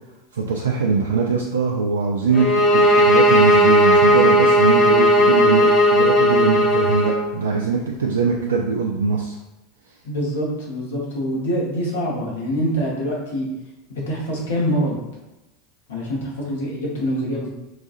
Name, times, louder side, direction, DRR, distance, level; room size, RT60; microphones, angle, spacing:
voice 1, 0.3-2.5 2.7-9.4, right 5 dB, 80° right, -1 dB, 0.3 m, -22 dB
sound 1, 2.3-7.2, equal, 35° left, 0.7 m, -15 dB
voice 2, 10.0-13.5 13.9-15.0 15.9-17.5, equal, 75° left, -3 dB, 0.9 m, -25 dB
4.0 x 2.4 x 2.5 m, 0.98 s
figure-of-eight pair, 80°, 0 cm